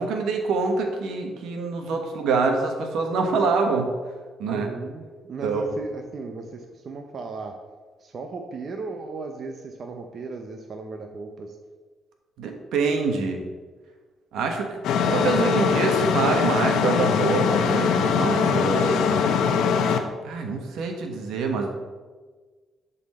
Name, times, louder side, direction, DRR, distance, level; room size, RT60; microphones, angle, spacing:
voice 1, 0.0-3.9 4.4-4.7 5.4-5.6 12.4-13.4 14.3-14.8 15.1-19.2 20.2-21.7, right 4 dB, 85° right, 3 dB, 1.2 m, -25 dB
voice 2, 4.5-7.5 8.0-11.5, right 4 dB, 50° right, 4 dB, 0.7 m, -36 dB
sound 1, 14.8-20.0, left 6 dB, 80° left, 0.7 m, -22 dB
11.0 x 4.3 x 4.2 m, 1.4 s
cardioid pair, 90°, 0 cm